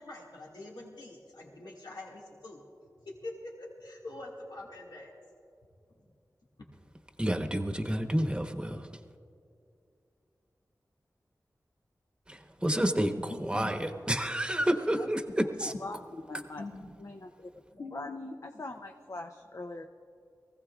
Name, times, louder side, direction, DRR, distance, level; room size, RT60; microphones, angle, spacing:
voice 1, 0.0-2.6 3.0-5.1 13.3-13.7 15.6-15.7 16.5-16.9 17.7-18.1, left 2 dB, 90° left, -3 dB, 2.0 m, -44 dB
voice 2, 7.2-8.9 12.3-13.1 13.4-15.7, equal, 15° right, 5 dB, 1.0 m, -29 dB
voice 3, 15.6-16.0 16.3-16.6 17.0-17.5 17.9-19.8, left 2 dB, 50° left, 4 dB, 0.6 m, -42 dB
23.5 x 16.0 x 2.4 m, 2.5 s
wide cardioid pair, 70°, 7 cm